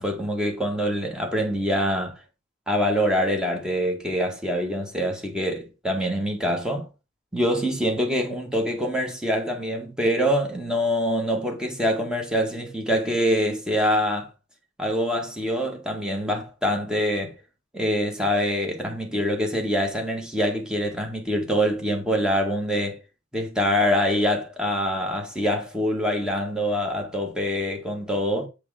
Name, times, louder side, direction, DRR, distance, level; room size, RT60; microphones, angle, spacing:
voice 1, 0.0-2.2 2.7-6.9 7.3-14.3 14.8-17.4 17.7-23.0 23.3-28.5, equal, 5° right, 2.0 m, -25 dB
6.8 x 5.0 x 5.0 m
head